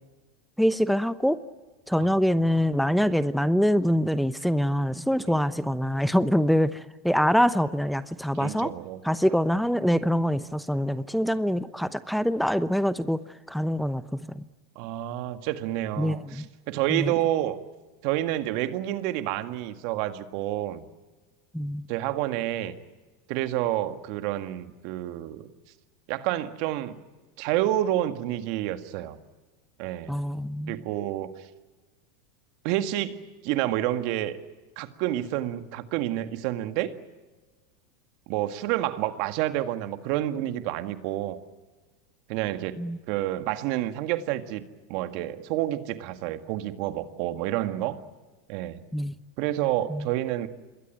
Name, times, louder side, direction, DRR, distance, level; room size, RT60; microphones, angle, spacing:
voice 1, 0.6-1.4 1.9-8.7 9.0-13.2 13.5-14.5 16.0-16.5 16.9-17.1 21.5-21.9 30.1-30.8 42.8-43.0 48.9-49.1 49.9-50.0, equal, ahead, 13 dB, 0.9 m, -24 dB
voice 2, 8.3-9.0 14.8-17.6 18.0-20.9 21.9-22.8 23.3-25.5 26.1-27.0 27.4-29.2 29.8-30.2 30.7-31.3 32.6-33.2 33.4-34.4 34.8-37.0 38.3-41.4 42.3-42.8 43.1-44.6 44.9-48.0 48.5-48.8 49.4-50.5, right 14 dB, 60° right, 9 dB, 1.9 m, -29 dB
26.5 x 21.5 x 9.1 m, 1.2 s
hypercardioid pair, 105°, 0 cm